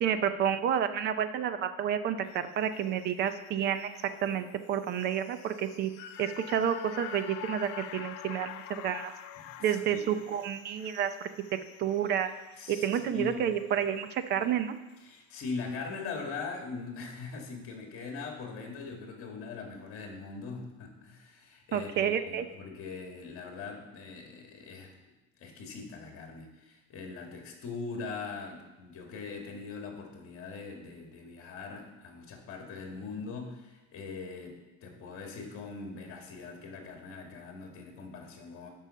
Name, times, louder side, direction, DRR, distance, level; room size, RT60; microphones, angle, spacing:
voice 1, 0.0-3.9 4.2-5.9 6.2-9.1 9.6-11.3 11.8-12.3 12.7-14.8 21.7-22.5, right 9 dB, 25° right, 11 dB, 0.5 m, -30 dB
sound 1, 2.2-14.6 14.9-15.0, left 11 dB, 65° left, 0.8 m, -47 dB
voice 2, 9.4-10.0 12.6-13.5 15.0-24.9 25.4-38.7, left 4 dB, 35° left, 2 dB, 2.1 m, -41 dB
12.0 x 5.5 x 5.5 m, 1.1 s
cardioid pair, 155°, 41 cm